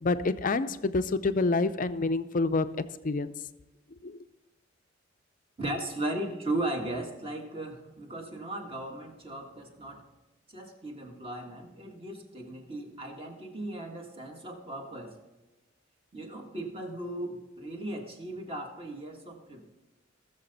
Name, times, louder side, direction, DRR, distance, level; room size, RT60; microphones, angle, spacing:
voice 1, 0.0-2.7 3.0-3.3 4.0-4.2, left 3 dB, 40° left, 12 dB, 0.5 m, -27 dB
voice 2, 5.6-10.1 10.5-15.2 16.1-19.7, right 1 dB, 30° right, 2 dB, 1.6 m, -37 dB
18.5 x 6.9 x 4.0 m, 1.1 s
head